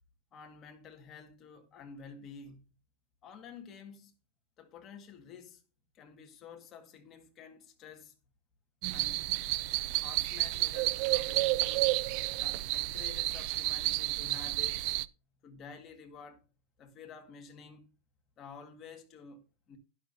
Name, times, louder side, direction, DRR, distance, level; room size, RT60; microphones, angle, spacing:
voice 1, 0.3-2.6 3.2-4.1 4.6-5.6 5.9-8.1 8.9-9.2 10.0-11.9 12.4-14.9 15.4-16.4 16.8-17.9 18.4-19.8, left 6 dB, 25° left, 1.8 m, -50 dB
sound 1, 8.8-15.0, right 19 dB, 40° right, 0.4 m, -31 dB
12.0 x 11.5 x 2.7 m
supercardioid pair, 175°, 0 cm